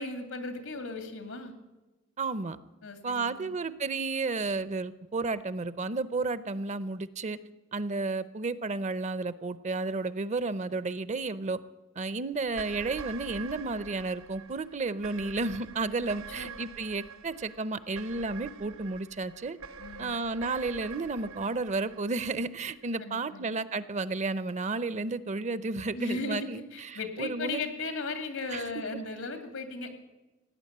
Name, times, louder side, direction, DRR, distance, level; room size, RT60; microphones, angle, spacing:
voice 1, 0.0-1.5 2.8-3.6 16.4-16.5 19.8-20.2 23.0-23.5 25.9-29.9, left 3 dB, 90° left, 7 dB, 2.5 m, -37 dB
voice 2, 2.2-2.6 3.0-7.4 7.7-11.6 12.0-19.6 20.0-27.6 28.5-28.8, right 3 dB, 35° right, 16 dB, 0.6 m, -32 dB
sound 1, 12.4-22.9, right 5 dB, 70° right, 0.7 m, -45 dB
17.0 x 9.6 x 8.6 m, 1.1 s
head